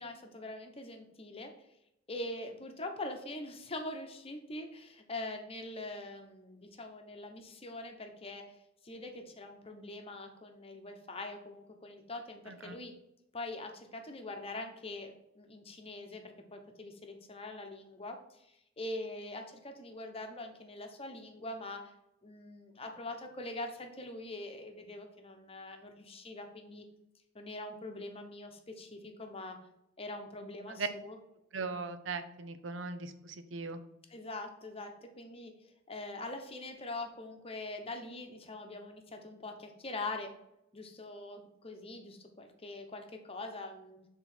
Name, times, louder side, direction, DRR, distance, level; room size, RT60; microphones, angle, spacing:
voice 1, 0.0-1.5 2.1-8.6 8.8-12.9 13.3-21.9 22.2-26.8 27.3-29.6 30.0-31.2 34.1-35.5 35.9-40.3 40.7-44.0, left 2 dB, 30° left, 4 dB, 1.0 m, -43 dB
voice 2, 12.5-12.8 30.7-30.9 31.5-33.8, right 4 dB, 90° right, 10 dB, 0.7 m, -39 dB
7.0 x 3.7 x 6.0 m, 0.81 s
head